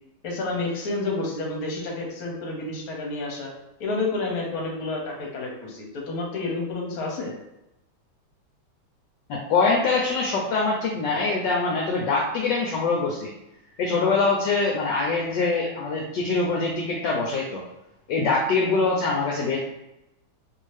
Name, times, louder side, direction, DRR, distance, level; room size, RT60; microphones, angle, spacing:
voice 1, 0.2-3.5 3.8-7.3, left 3 dB, 55° left, -1 dB, 1.2 m, -30 dB
voice 2, 9.3-13.3 13.8-17.6 18.1-19.6, left 4 dB, 70° left, -2 dB, 1.1 m, -24 dB
3.0 x 2.7 x 3.2 m, 0.90 s
omnidirectional pair, 2.2 m